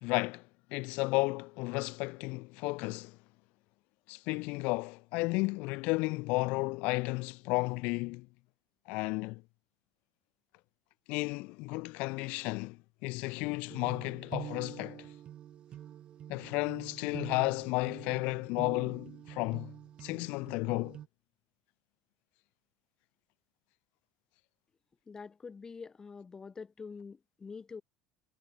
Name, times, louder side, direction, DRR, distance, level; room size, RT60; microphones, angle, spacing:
voice 1, 0.0-3.2 4.1-8.3 8.9-9.4 11.1-15.1 16.3-19.7 20.0-21.0, left 25 dB, 60° left, 0.7 m, -33 dB
sound 1, 13.7-21.1, right 11 dB, 45° right, 0.7 m, -46 dB
voice 2, 25.1-27.8, left 5 dB, 25° left, 0.8 m, -46 dB
figure-of-eight pair, 65°, 3 cm